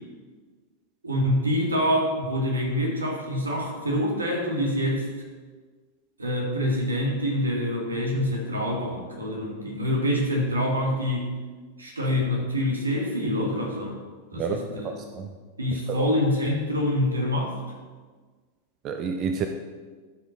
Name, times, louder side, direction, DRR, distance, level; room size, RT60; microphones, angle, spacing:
voice 1, 1.0-5.1 6.2-11.3 11.8-14.0 14.3-15.1 15.6-17.6, left 1 dB, 75° right, -1 dB, 2.0 m, -26 dB
voice 2, 14.3-15.3 15.9-16.1 18.8-19.5, right 6 dB, 35° right, 6 dB, 0.6 m, -29 dB
12.5 x 6.4 x 4.1 m, 1.5 s
figure-of-eight pair, 90°, 0 cm